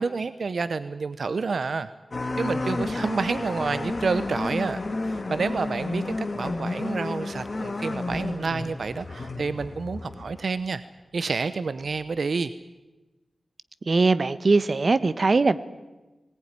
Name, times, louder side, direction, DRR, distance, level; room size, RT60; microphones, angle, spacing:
voice 1, 0.0-1.9 2.4-10.8 11.1-12.5, right 4 dB, 70° right, 13 dB, 0.8 m, -29 dB
sound 1, 2.1-10.5 10.8-10.9 12.0-12.1, left 2 dB, 45° left, 2.5 m, -31 dB
voice 2, 13.9-15.6, right 3 dB, 50° right, 14 dB, 1.0 m, -21 dB
20.5 x 19.5 x 9.7 m, 1.1 s
wide cardioid pair, 90°, 0 cm